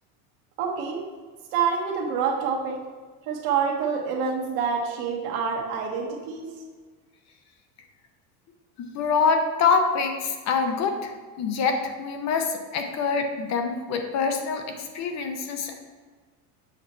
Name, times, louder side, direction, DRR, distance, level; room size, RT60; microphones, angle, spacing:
voice 1, 0.6-1.0 1.5-2.8 3.3-6.5, right 6 dB, 65° right, 0 dB, 1.4 m, -27 dB
voice 2, 8.8-11.1 11.4-15.8, left 5 dB, 40° left, 5 dB, 0.7 m, -25 dB
7.3 x 2.9 x 5.4 m, 1.5 s
supercardioid pair, 135°, 45 cm